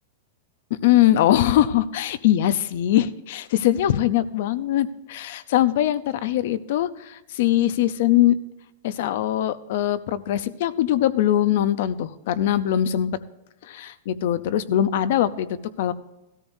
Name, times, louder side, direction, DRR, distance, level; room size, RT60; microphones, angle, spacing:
voice 1, 0.8-8.4 8.8-13.1 13.6-15.9, left 12 dB, 55° left, 15 dB, 0.6 m, -22 dB
17.0 x 13.5 x 2.7 m, 0.95 s
supercardioid pair, 175°, 0 cm